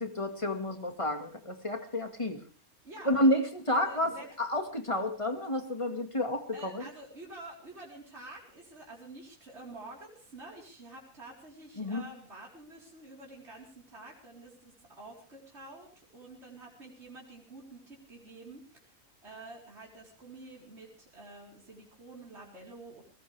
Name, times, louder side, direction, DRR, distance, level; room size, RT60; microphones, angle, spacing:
voice 1, 0.0-2.4 3.0-6.8 11.8-12.0, left 1 dB, 20° left, 5 dB, 2.0 m, -30 dB
voice 2, 2.8-3.2 3.7-4.3 6.5-18.9 19.2-23.0, right 2 dB, 50° right, -3 dB, 4.5 m, -49 dB
20.5 x 19.0 x 3.5 m, 0.40 s
omnidirectional pair, 1.5 m